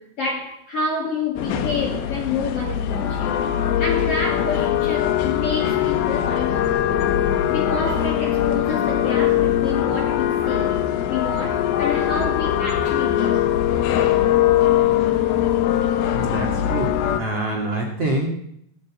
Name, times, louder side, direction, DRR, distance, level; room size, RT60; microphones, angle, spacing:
voice 1, 0.0-3.5 3.8-10.8 11.0-13.4, left 4 dB, 40° left, 3.2 m, -28 dB
sound 1, 1.4-17.2, left 11 dB, 70° left, 2.8 m, -21 dB
voice 2, 16.1-16.9 17.2-18.3, right 1 dB, 40° right, 2.7 m, -25 dB
18.5 x 7.4 x 8.6 m
omnidirectional pair, 4.9 m